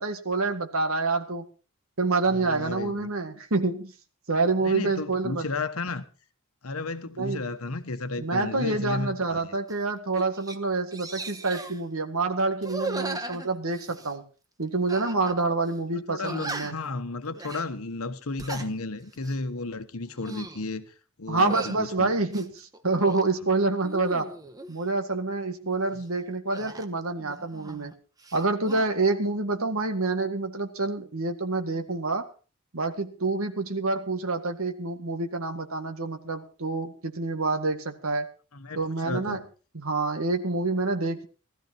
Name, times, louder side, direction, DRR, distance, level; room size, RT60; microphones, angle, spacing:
voice 1, 0.0-1.5 2.0-3.9 4.3-5.5 7.2-7.4 8.2-14.3 14.6-16.8 21.3-24.4 24.7-28.0 28.3-32.3 32.7-38.3 38.8-39.4 39.7-41.3, right 3 dB, 75° right, 1.9 m, -27 dB
voice 2, 2.3-3.1 4.6-6.0 6.6-9.6 15.9-22.2 38.5-38.8 39.0-39.4, left 3 dB, 80° left, 1.2 m, -33 dB
sound 1, 9.7-9.8 10.2-10.6 10.9-11.8 12.6-14.1 14.9-15.4 15.7-15.8 16.2-16.9 17.3-17.6 18.2-18.7 19.1-19.4 20.0-20.6 21.4-21.8 22.3-23.3 23.8-24.7 26.5-27.9 28.2-28.9, right 2 dB, 15° right, 1.1 m, -38 dB
16.5 x 13.5 x 4.4 m
head